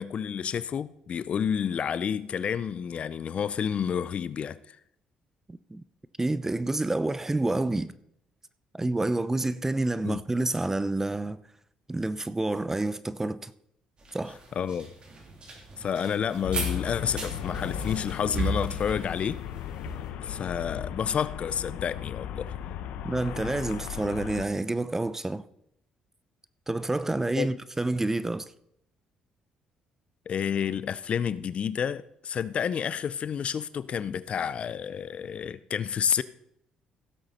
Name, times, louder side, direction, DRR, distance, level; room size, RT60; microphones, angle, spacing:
voice 1, 0.0-4.8 10.0-10.2 14.5-14.9 15.8-19.4 20.2-22.5 27.4-27.5 30.3-36.2, left 8 dB, 55° left, 0.5 m, -30 dB
voice 2, 5.5-5.8 6.2-7.9 8.7-11.4 11.9-13.5 14.1-14.4 23.0-25.4 26.7-28.5, right 2 dB, 15° right, 0.6 m, -28 dB
sound 1, 14.0-20.1, right 2 dB, 40° right, 3.3 m, -36 dB
Traffic noise roadway noise, 16.4-24.5, left 10 dB, 80° left, 0.8 m, -36 dB
16.0 x 7.9 x 4.3 m
supercardioid pair, 65°, 2 cm